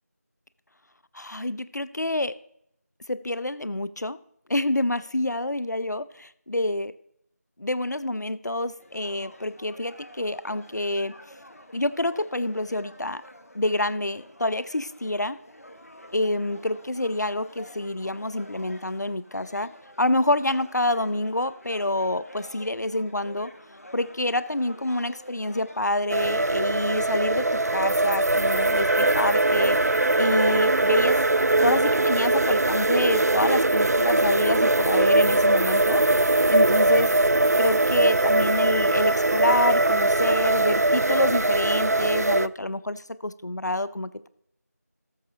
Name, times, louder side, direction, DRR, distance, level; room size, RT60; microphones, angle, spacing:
voice 1, 1.1-2.3 3.1-4.2 4.5-6.9 7.6-11.1 11.7-13.2 13.5-15.4 16.1-19.7 20.0-23.5 23.9-31.2 31.6-36.0 36.5-37.1 37.6-44.3, left 1 dB, 80° left, 15 dB, 0.6 m, -27 dB
sound 1, 8.8-25.8, equal, 60° left, 1.4 m, -48 dB
sound 2, 26.1-42.5, right 2 dB, 70° right, 0.4 m, -21 dB
18.0 x 6.5 x 2.9 m, 0.73 s
figure-of-eight pair, 175°, 9 cm